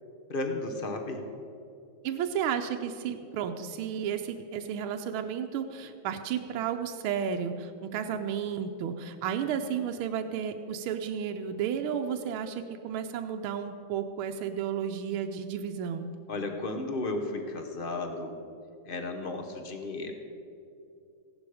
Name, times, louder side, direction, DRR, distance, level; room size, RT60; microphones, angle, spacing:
voice 1, 0.3-1.2 16.3-18.4 18.8-20.1, left 2 dB, 45° left, 5 dB, 0.7 m, -34 dB
voice 2, 2.0-16.1, right 8 dB, 75° right, 5 dB, 1.5 m, -32 dB
16.0 x 11.5 x 4.9 m, 2.6 s
omnidirectional pair, 2.4 m